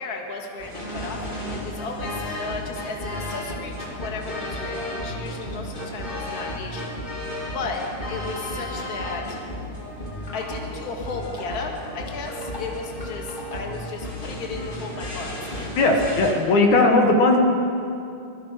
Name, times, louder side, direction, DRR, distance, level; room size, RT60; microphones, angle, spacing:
voice 1, 0.0-6.9 7.5-7.8 8.1-9.2 10.3-16.1 16.5-16.6, left 4 dB, 30° left, 1 dB, 2.2 m, -35 dB
sound 1, 0.6-16.3, left 1 dB, 15° left, 2.9 m, -33 dB
voice 2, 15.8-17.4, left 2 dB, 70° left, 2 dB, 3.1 m, -18 dB
25.5 x 20.5 x 5.1 m, 2.7 s
omnidirectional pair, 3.7 m